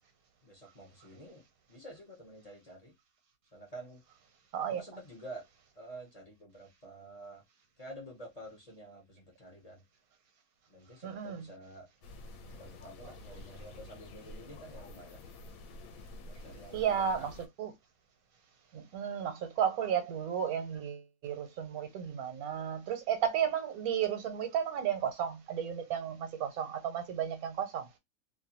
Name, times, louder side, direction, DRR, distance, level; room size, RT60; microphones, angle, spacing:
voice 1, 0.4-1.4 1.7-2.9 3.5-4.0 4.7-5.4 5.8-7.4 7.8-9.8 10.7-11.9 12.5-15.2 16.3-17.3, right 1 dB, 35° left, 0.6 m, -49 dB
voice 2, 4.5-4.8 11.0-11.4 16.7-17.7 18.7-27.9, right 8 dB, 85° right, 1.2 m, -33 dB
sound 1, 12.0-17.5, left 2 dB, 75° left, 1.0 m, -49 dB
2.6 x 2.2 x 2.8 m
omnidirectional pair, 1.5 m